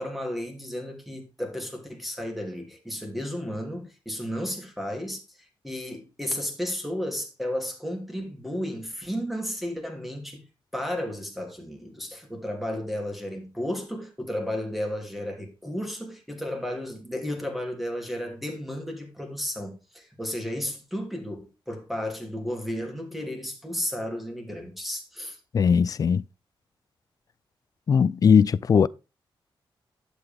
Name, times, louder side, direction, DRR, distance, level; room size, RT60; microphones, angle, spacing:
voice 1, 0.0-10.4 10.7-25.4, left 1 dB, ahead, 2.9 m, -33 dB
voice 2, 25.5-26.2 27.9-28.9, left 6 dB, 40° left, 0.4 m, -19 dB
11.5 x 8.0 x 3.5 m
wide cardioid pair, 135°, 9 cm